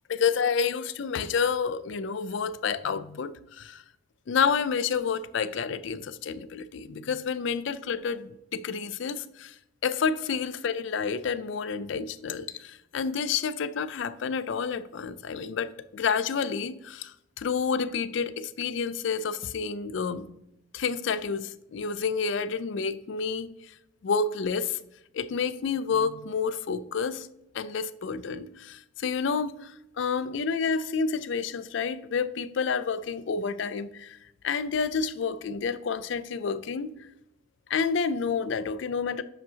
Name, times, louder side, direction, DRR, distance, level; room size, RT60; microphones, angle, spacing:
voice 1, 0.1-3.8 4.3-20.3 20.7-23.7 24.0-24.8 25.1-27.3 27.5-34.2 34.4-37.1 37.7-39.2, left 5 dB, 60° left, 0.4 m, -29 dB
11.0 x 5.1 x 2.8 m
head